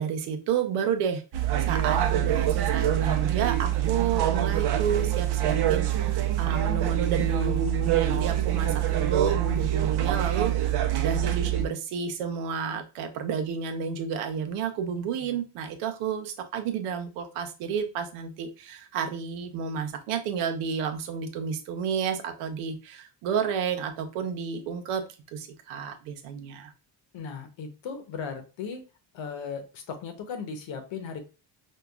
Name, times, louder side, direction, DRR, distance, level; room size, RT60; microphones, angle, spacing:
voice 1, 0.0-26.7, right 6 dB, 85° right, 6 dB, 0.8 m, -31 dB
sound 1, 1.3-11.7, right 12 dB, 50° right, 0.6 m, -25 dB
voice 2, 27.1-28.8 29.1-31.2, left 6 dB, 65° left, 6 dB, 1.0 m, -37 dB
4.5 x 2.2 x 2.3 m, 0.31 s
cardioid pair, 90°, 50 cm